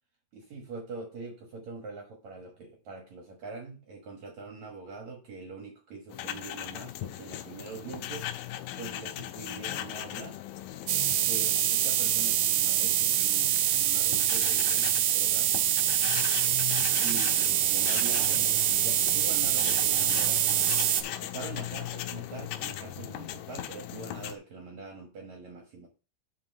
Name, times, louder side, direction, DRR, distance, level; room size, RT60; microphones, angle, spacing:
voice 1, 0.3-8.3 8.8-10.4 11.3-15.5 17.0-20.8 21.2-25.9, right 4 dB, 60° right, 2.0 m, -43 dB
sound 1, 6.1-24.4, left 13 dB, 90° left, 2.0 m, -38 dB
sound 2, 10.9-21.0, right 12 dB, 75° right, 2.4 m, -25 dB
5.7 x 5.3 x 6.2 m
omnidirectional pair, 4.7 m